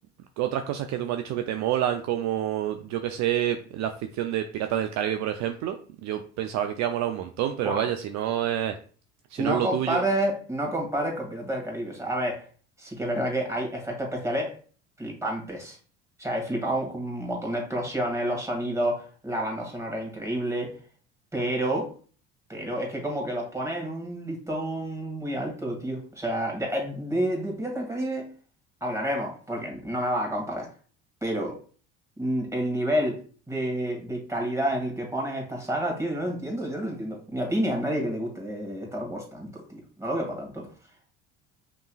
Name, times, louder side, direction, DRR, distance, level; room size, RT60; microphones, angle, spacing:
voice 1, 0.4-8.7 9.3-10.0, right 11 dB, 55° right, 7 dB, 0.5 m, -28 dB
voice 2, 9.4-12.4 12.8-14.6 15.0-15.8 16.2-20.7 21.3-21.9 22.5-28.3 28.8-30.7 31.2-31.6 32.2-33.2 33.5-40.7, right 1 dB, 10° right, 0 dB, 1.9 m, -29 dB
5.3 x 3.0 x 2.3 m, 0.42 s
hypercardioid pair, 65°, 34 cm